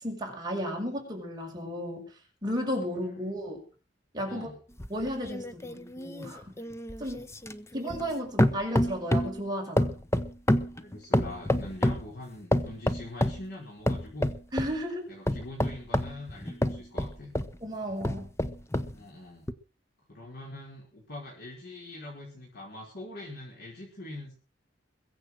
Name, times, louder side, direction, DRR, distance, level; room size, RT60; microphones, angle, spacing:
voice 1, 0.0-2.0 2.4-3.6 4.1-4.5 4.9-6.4 7.0-7.3 7.7-9.9 14.5-15.1 17.6-18.3, equal, 25° right, 0 dB, 5.4 m, -33 dB
sound 1, 4.8-8.1 8.4-9.4 9.8-12.1 12.5-13.4 13.9-14.7 15.3-17.5 18.0-18.9 19.5-19.6, left 1 dB, 15° left, 0.9 m, -28 dB
voice 2, 10.8-14.3 15.1-17.3 18.9-19.5 20.1-24.3, left 1 dB, 60° left, -3 dB, 5.1 m, -43 dB
22.0 x 8.1 x 6.3 m, 0.39 s
head